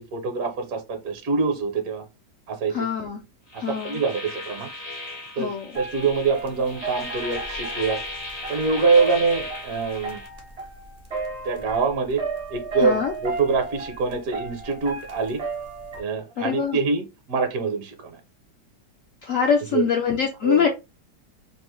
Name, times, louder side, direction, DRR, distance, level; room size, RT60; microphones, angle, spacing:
voice 1, 0.0-2.0 2.5-2.7 3.5-4.7 5.3-8.0 8.5-10.2 11.4-12.2 12.5-15.4 16.0-18.2 19.7-19.8 20.4-20.7, right 4 dB, 65° right, 1.1 m, -25 dB
voice 2, 2.7-3.2 3.6-4.0 5.4-5.7 12.8-13.1 16.4-16.8 19.2-20.7, left 7 dB, 75° left, 0.7 m, -24 dB
sound 1, 3.5-10.3, left 2 dB, 90° left, 0.3 m, -36 dB
sound 2, 5.7-16.0, right 4 dB, 40° right, 0.5 m, -34 dB
3.0 x 2.0 x 3.0 m
omnidirectional pair, 1.8 m